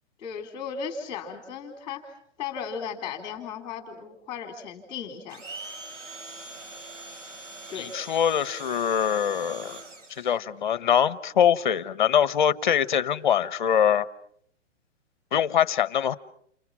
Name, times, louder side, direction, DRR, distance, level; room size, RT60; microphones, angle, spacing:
voice 1, 0.2-2.1 2.4-5.4 7.7-7.9, left 6 dB, 10° left, 4.0 m, -36 dB
Domestic sounds home sounds, 5.3-10.4, right 3 dB, 85° right, 6.6 m, -42 dB
voice 2, 7.7-9.8 10.2-14.1 15.3-16.2, left 9 dB, 40° left, 1.0 m, -23 dB
30.0 x 28.5 x 6.0 m
hypercardioid pair, 175°, 36 cm